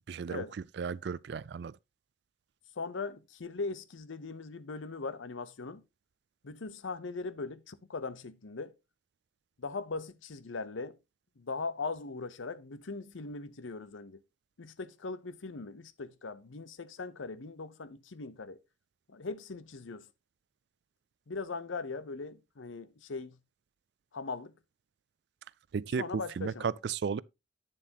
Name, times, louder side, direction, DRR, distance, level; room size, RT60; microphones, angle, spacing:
voice 1, 0.1-0.4 0.8-1.8 25.7-27.2, right 6 dB, 60° right, 0.3 m, -34 dB
voice 2, 2.8-5.8 6.4-8.7 9.6-11.0 11.4-14.2 14.6-18.6 19.1-20.1 21.3-23.4 24.1-24.5 26.0-26.7, left 4 dB, 85° left, 0.7 m, -40 dB
9.3 x 7.2 x 2.8 m
head